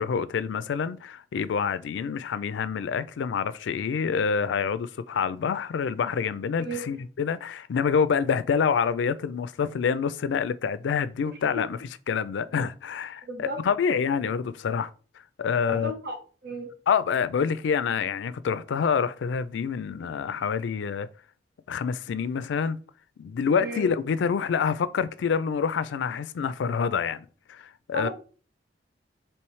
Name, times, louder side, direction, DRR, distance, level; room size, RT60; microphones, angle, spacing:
voice 1, 0.0-14.9 15.4-15.9 16.9-21.1 21.7-22.8 23.2-28.1, left 6 dB, 85° left, 0.3 m, -27 dB
voice 2, 6.6-6.9 11.2-11.4 13.2-13.6 15.7-16.2 16.4-16.7 23.6-23.9 27.9-28.1, right 1 dB, 60° right, 0.8 m, -34 dB
4.6 x 3.1 x 3.1 m
head